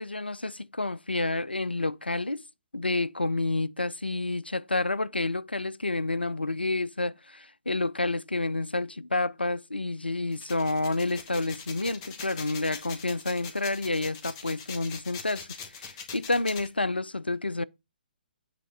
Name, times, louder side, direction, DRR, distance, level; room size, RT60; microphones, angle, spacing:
voice 1, 0.0-2.4 2.7-17.6, left 2 dB, 90° left, 0.5 m, -29 dB
sound 1, 10.3-16.7, left 6 dB, 30° left, 1.4 m, -42 dB
9.4 x 3.7 x 5.1 m
figure-of-eight pair, 130°, 5 cm